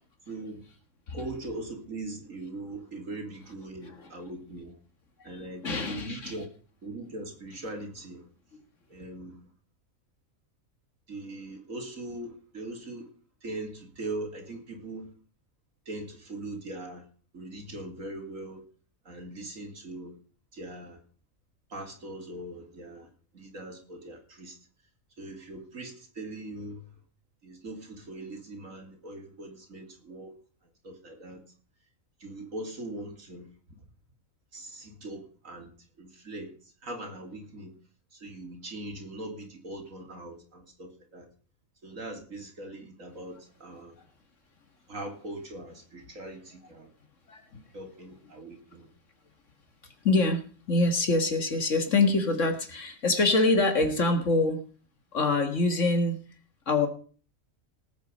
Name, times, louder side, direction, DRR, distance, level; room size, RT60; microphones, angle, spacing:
voice 1, 0.3-0.6 1.1-4.8 5.2-6.5 6.8-8.3 8.9-9.5 11.1-13.1 13.4-15.1 15.8-17.1 17.3-18.6 19.0-20.2 20.5-21.0 21.7-24.6 25.2-27.0 27.4-30.3 30.8-31.4 32.2-33.5 34.5-37.7 38.1-41.3 41.8-44.0 44.9-46.9 47.7-48.9, right 2 dB, 75° right, 3.4 m, -41 dB
voice 2, 5.6-6.4 8.5-8.6 47.3-47.6 49.8-54.6 55.1-56.2 56.7-56.9, left 2 dB, 65° left, 2.0 m, -25 dB
18.5 x 8.4 x 5.3 m
omnidirectional pair, 1.4 m